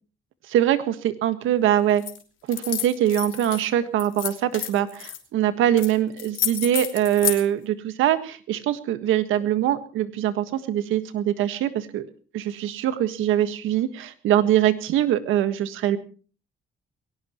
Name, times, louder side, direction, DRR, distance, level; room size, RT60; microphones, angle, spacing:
voice 1, 0.5-2.0 2.5-12.1 12.3-16.0, right 11 dB, 90° right, 11 dB, 1.6 m, -23 dB
sound 1, 2.0-2.2 2.5-3.6 4.0-5.2 5.8-5.9 6.2-7.4, left 11 dB, 80° left, 3.1 m, -29 dB
22.0 x 18.0 x 3.1 m, 0.38 s
cardioid pair, 90°, 20 cm